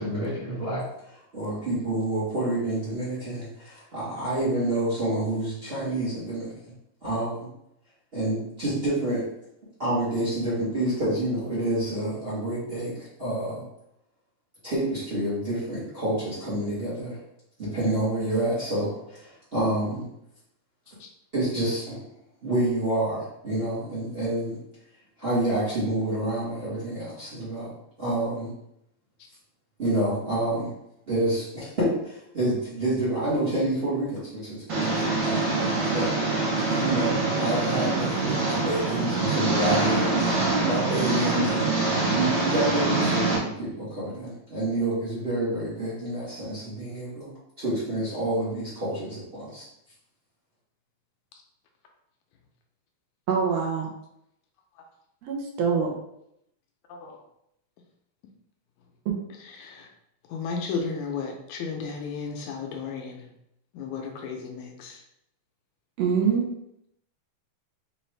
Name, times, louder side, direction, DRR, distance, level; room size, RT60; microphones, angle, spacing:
voice 1, 0.0-6.6 7.0-7.5 8.1-9.2 9.8-13.6 14.6-17.2 17.6-20.1 21.3-22.0 22.4-24.6 25.2-27.7 28.0-28.5 29.8-30.7 31.1-47.3 47.6-49.6, right 1 dB, 40° right, -9 dB, 0.8 m, -28 dB
Engine, 34.7-43.4, right 3 dB, 60° right, 1.2 m, -25 dB
voice 2, 53.3-53.9 55.2-55.9 59.0-59.1 66.0-66.5, right 6 dB, 75° right, 0 dB, 1.6 m, -24 dB
voice 3, 59.4-59.9 60.3-63.3 63.7-65.0, left 5 dB, 80° left, 2 dB, 1.9 m, -34 dB
5.2 x 2.6 x 3.2 m, 0.77 s
omnidirectional pair, 3.5 m